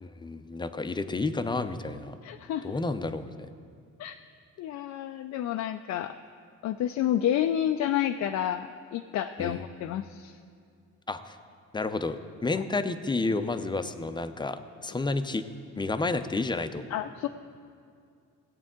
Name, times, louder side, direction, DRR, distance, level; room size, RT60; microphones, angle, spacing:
voice 1, 0.0-2.1 2.6-3.3 9.4-9.7 11.1-11.4 11.7-12.2 12.4-15.4 15.8-16.8, left 3 dB, 15° left, 10 dB, 0.6 m, -30 dB
voice 2, 2.2-2.8 4.0-4.2 4.6-6.2 6.6-10.4 16.9-17.3, left 11 dB, 65° left, 7 dB, 0.4 m, -30 dB
16.5 x 8.3 x 3.7 m, 2.3 s
cardioid pair, 90°, 30 cm